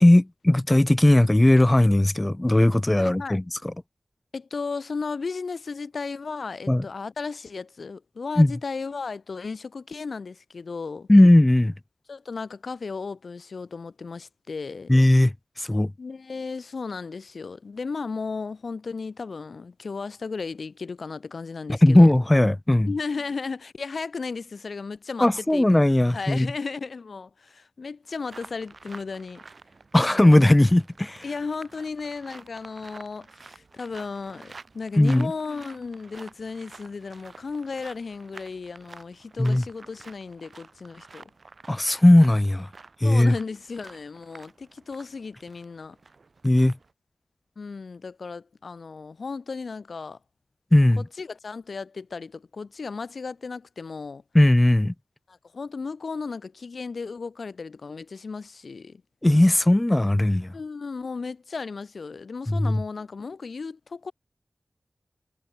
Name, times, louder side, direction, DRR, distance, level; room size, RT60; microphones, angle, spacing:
voice 1, 0.0-3.6 6.7-6.8 8.4-8.5 11.1-11.7 14.9-15.9 21.7-22.9 25.2-26.5 29.9-31.2 35.0-35.3 39.4-39.6 41.7-42.7 43.0-43.3 46.4-46.7 50.7-51.0 54.3-54.9 59.2-60.5 62.5-62.8, left 1 dB, 20° left, 0.3 m, -18 dB
voice 2, 3.0-3.4 4.3-11.1 12.1-14.9 16.0-22.1 22.9-25.7 26.1-29.4 30.1-30.4 31.2-41.3 43.0-46.0 47.6-50.2 51.0-54.2 55.3-59.0 60.5-64.1, left 4 dB, 75° left, 2.2 m, -35 dB
sound 1, 28.3-46.9, right 4 dB, 65° right, 1.4 m, -49 dB
wide cardioid pair, 60°, 0 cm